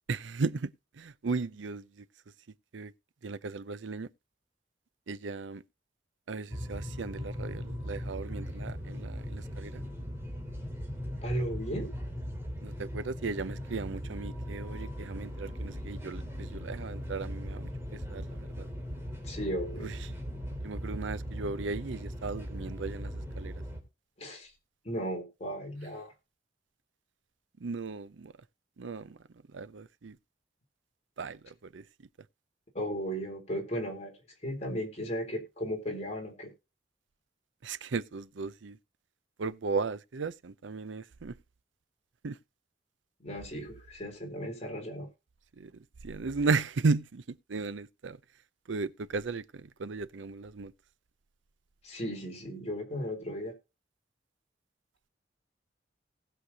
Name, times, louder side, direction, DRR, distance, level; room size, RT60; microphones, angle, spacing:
voice 1, 0.1-2.0 2.7-2.9 3.2-4.1 5.1-5.6 6.3-9.8 12.6-18.7 19.8-19.9 20.6-23.5 27.6-28.3 28.8-29.2 29.5-30.2 31.2-31.8 37.6-38.8 39.4-41.4 42.2-42.4 45.6-45.7 46.0-48.2 48.7-50.7, right 4 dB, 85° right, 0.6 m, -35 dB
sound 1, 6.5-23.8, equal, 15° right, 2.6 m, -39 dB
voice 2, 11.2-11.9 19.2-19.9 24.2-24.5 24.8-26.1 32.7-34.1 34.4-36.5 43.2-45.1 51.8-53.5, equal, 35° left, 3.7 m, -35 dB
19.0 x 6.5 x 2.8 m
head